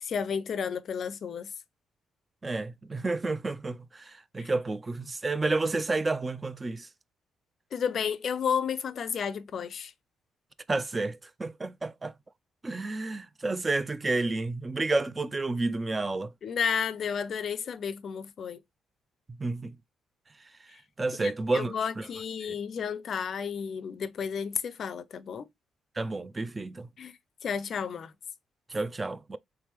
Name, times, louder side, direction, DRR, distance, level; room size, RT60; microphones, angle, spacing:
voice 1, 0.0-1.5 4.4-4.5 7.7-9.9 16.4-18.6 21.2-25.5 27.0-28.1, left 7 dB, 55° left, 0.4 m, -32 dB
voice 2, 2.4-6.9 10.7-12.1 12.6-16.3 19.3-19.8 21.0-22.1 22.4-22.5 26.0-26.9 28.7-29.4, right 3 dB, 25° right, 0.4 m, -30 dB
3.6 x 3.3 x 3.0 m
cardioid pair, 90°, 0 cm